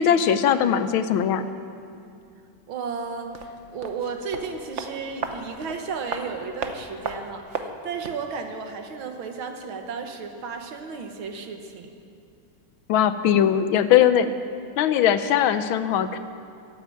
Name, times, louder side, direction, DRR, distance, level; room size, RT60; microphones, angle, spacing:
voice 1, 0.0-1.4 12.9-14.3 14.8-16.2, left 9 dB, 85° left, 11 dB, 1.5 m, -20 dB
voice 2, 2.7-11.9, right 5 dB, 80° right, 5 dB, 2.0 m, -34 dB
sound 1, 3.3-8.3 8.5-8.6, right 5 dB, 50° right, 1.0 m, -35 dB
14.5 x 8.9 x 9.8 m, 2.4 s
omnidirectional pair, 2.2 m